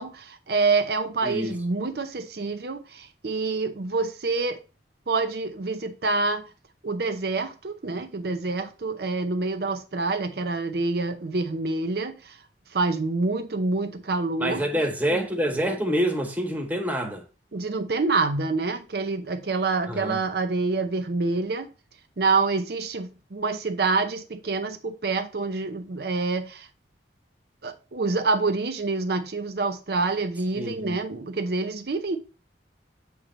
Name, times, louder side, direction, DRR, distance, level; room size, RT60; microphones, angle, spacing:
voice 1, 0.0-4.6 5.1-6.4 6.8-12.4 12.7-14.6 17.5-21.7 22.2-26.7 27.6-32.2, right 3 dB, 55° right, 0.6 m, -27 dB
voice 2, 1.2-1.6 14.4-17.2 19.9-20.2 30.5-31.0, equal, 10° right, 0.9 m, -27 dB
8.1 x 3.1 x 5.0 m
head